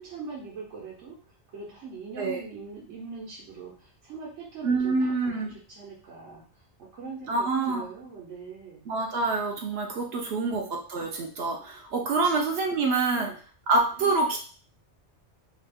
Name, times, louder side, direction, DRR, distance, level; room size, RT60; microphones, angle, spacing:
voice 1, 0.0-6.6 6.9-8.8 10.1-10.7 11.9-12.4 13.1-13.4 14.0-14.1, right 4 dB, 85° right, -5 dB, 1.2 m, -42 dB
voice 2, 4.6-5.5 7.3-7.8 8.9-13.3 13.7-14.4, right 3 dB, 70° right, 1 dB, 0.8 m, -26 dB
2.8 x 2.4 x 3.4 m, 0.42 s
omnidirectional pair, 1.2 m